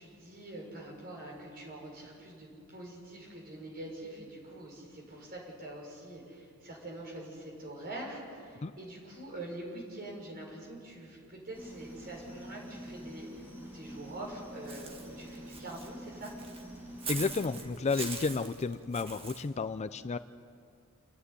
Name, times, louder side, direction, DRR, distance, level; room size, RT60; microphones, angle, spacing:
voice 1, 0.0-16.3, right 1 dB, 45° right, -2 dB, 6.1 m, -45 dB
sound 1, 11.5-17.7, equal, 10° right, 7.5 m, -47 dB
Walk footsteps / Bird, 14.7-19.4, right 4 dB, 25° right, 1.6 m, -42 dB
voice 2, 17.1-20.2, left 4 dB, 30° left, 12 dB, 0.4 m, -32 dB
29.0 x 10.5 x 9.9 m, 2.3 s
head